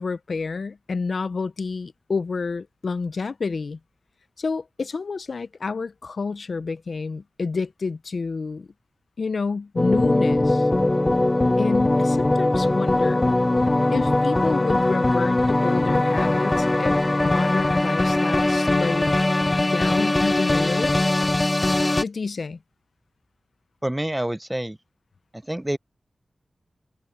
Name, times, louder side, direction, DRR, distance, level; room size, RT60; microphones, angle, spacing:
voice 1, 0.0-3.8 4.4-8.7 9.2-10.7 11.6-13.3 13.9-19.1 19.6-20.9 22.0-22.6, left 4 dB, 65° left, 0.6 m, -29 dB
sound 1, 9.8-22.0, left 2 dB, 25° left, 0.6 m, -21 dB
voice 2, 23.8-24.8 25.4-25.8, right 1 dB, 10° right, 0.6 m, -27 dB
wide cardioid pair, 80°, 0 cm